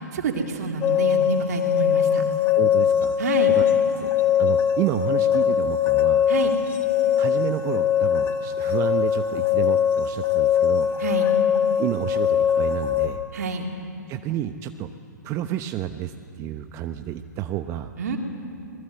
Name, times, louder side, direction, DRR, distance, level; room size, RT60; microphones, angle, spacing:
voice 1, 0.0-2.2 3.2-3.5 6.3-6.5 11.0-11.3 13.3-13.7 18.0-18.2, right 4 dB, 60° right, 2 dB, 3.5 m, -28 dB
sound 1, 0.8-13.1, left 9 dB, 25° left, 1.8 m, -21 dB
voice 2, 2.5-3.2 3.5-3.7 4.0-4.1 4.4-6.2 7.2-10.9 11.8-13.2 14.1-14.9 15.2-17.9, right 12 dB, 30° right, 8 dB, 0.9 m, -30 dB
27.0 x 21.0 x 8.1 m, 2.6 s
figure-of-eight pair, 120°, 10 cm